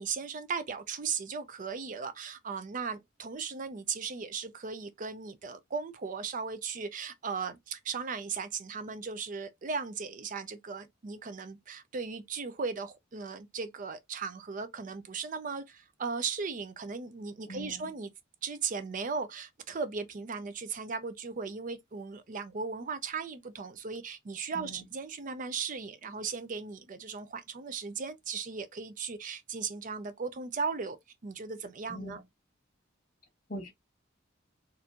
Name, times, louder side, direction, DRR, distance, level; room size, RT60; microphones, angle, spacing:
voice 1, 0.0-18.1 18.4-31.0 31.2-32.2, right 5 dB, 40° right, 0.5 m, -37 dB
voice 2, 17.5-17.9 24.5-24.8 31.9-32.2 33.5-33.7, equal, 45° left, 1.7 m, -41 dB
4.2 x 2.6 x 2.8 m
head